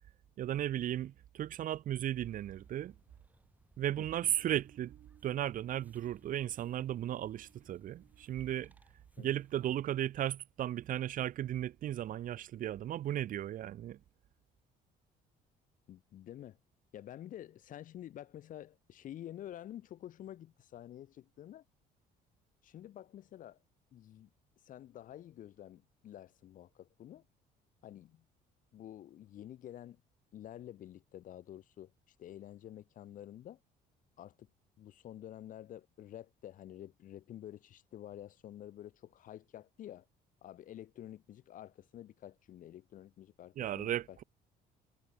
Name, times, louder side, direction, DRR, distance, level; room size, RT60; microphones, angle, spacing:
voice 1, 0.4-2.9 3.8-8.7 9.2-14.0 43.6-44.2, right 12 dB, 55° right, 0.8 m, -35 dB
sound 1, 2.2-9.8, right 2 dB, 10° right, 3.0 m, -67 dB
voice 2, 4.0-4.3 9.2-9.3 15.9-16.6 16.9-21.6 22.6-23.6 23.9-24.3 24.6-27.3 27.8-28.2 28.7-30.0 30.3-31.9 32.2-33.6 34.2-34.5 34.8-40.1 40.4-44.2, left 12 dB, 55° left, 0.7 m, -49 dB
cardioid pair, 110°, 17 cm